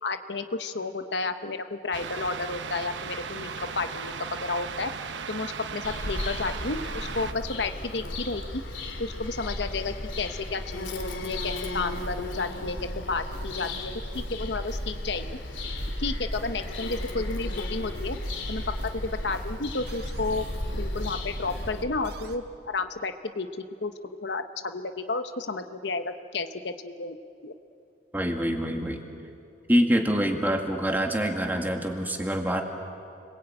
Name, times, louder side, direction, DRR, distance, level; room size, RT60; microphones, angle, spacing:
voice 1, 0.0-3.5 3.7-4.1 4.4-4.9 5.3-8.6 9.0-15.2 16.0-18.2 18.5-18.6 19.0-20.5 20.7-23.5 23.8-23.9 24.2-27.2 27.4-27.5, left 3 dB, 65° left, 8 dB, 1.0 m, -32 dB
sound 1, 1.9-7.3, right 5 dB, 75° right, 1.0 m, -37 dB
Bird vocalization bird call bird song, 5.8-21.8, left 1 dB, 85° left, 3.0 m, -35 dB
sound 2, 11.7-22.4, equal, 60° right, 1.7 m, -40 dB
voice 2, 28.1-29.0 29.7-32.6, equal, 10° right, 3 dB, 1.9 m, -25 dB
30.0 x 21.5 x 8.9 m, 2.6 s
head